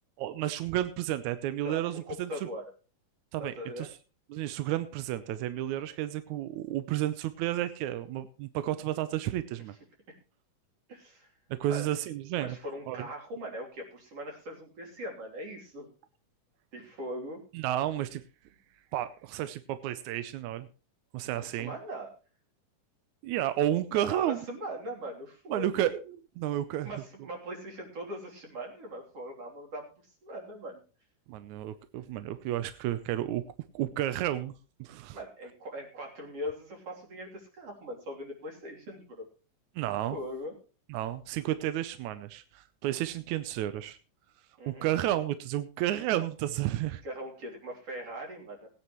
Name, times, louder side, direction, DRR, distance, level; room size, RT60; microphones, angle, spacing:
voice 1, 0.2-2.3 3.3-4.0 4.3-9.7 11.5-12.6 12.9-13.1 17.5-18.2 18.9-20.7 21.1-21.7 23.2-24.4 25.5-26.9 31.3-33.4 33.7-34.5 34.8-35.2 39.8-40.2 40.9-44.0 44.7-47.0, right 13 dB, 75° right, 12 dB, 1.9 m, -31 dB
voice 2, 1.6-2.7 3.4-3.9 10.9-11.3 11.7-11.9 12.4-15.9 16.7-17.4 21.4-22.1 23.9-25.9 26.8-30.8 35.1-39.3 40.1-40.5 44.6-44.9 47.0-48.7, equal, 50° right, 0 dB, 4.0 m, -40 dB
19.5 x 9.6 x 3.0 m, 0.34 s
omnidirectional pair, 3.6 m